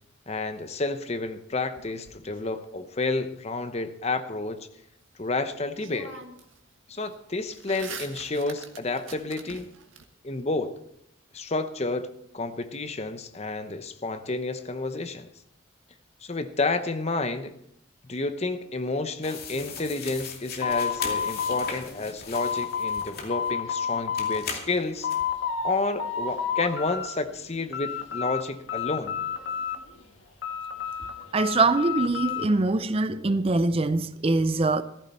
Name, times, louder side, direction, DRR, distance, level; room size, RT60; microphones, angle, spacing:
voice 1, 0.3-4.7 5.2-6.1 6.9-9.7 10.2-10.7 11.3-12.1 12.3-15.3 16.2-17.5 18.0-25.1 25.6-29.1, left 3 dB, 35° left, 0.9 m, -30 dB
sound 1, 1.8-3.0 5.3-5.4 5.8-6.6 6.9-10.0, right 5 dB, 75° right, 1.8 m, -44 dB
sound 2, 19.2-23.6 24.2-25.2, left 5 dB, 50° left, 2.5 m, -39 dB
sound 3, 20.6-23.1 23.3-24.4 24.8-25.7 26.0-27.1 27.4-28.4 28.7-30.0 30.4-32.5, left 7 dB, 70° left, 1.7 m, -30 dB
voice 2, 31.3-34.8, right 3 dB, 30° right, 0.5 m, -23 dB
15.0 x 14.5 x 4.3 m
head